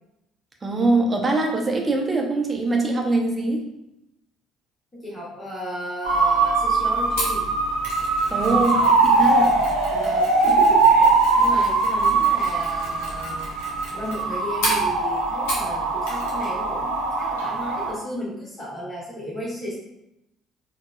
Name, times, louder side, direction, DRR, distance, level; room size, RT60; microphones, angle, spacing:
voice 1, 0.6-3.6 8.3-8.7 9.0-9.6, right 2 dB, 25° right, 1 dB, 0.7 m, -22 dB
voice 2, 4.9-7.5 8.3-8.9 9.9-13.4 13.9-19.8, equal, 25° left, -5 dB, 1.1 m, -34 dB
sound 1, 6.0-17.9, right 3 dB, 80° right, 0.6 m, -21 dB
Mechanisms, 7.2-15.8 16.0-16.5 16.8-16.9, left 1 dB, 65° left, 1.0 m, -34 dB
4.5 x 2.3 x 2.3 m, 0.85 s
figure-of-eight pair, 50°, 0 cm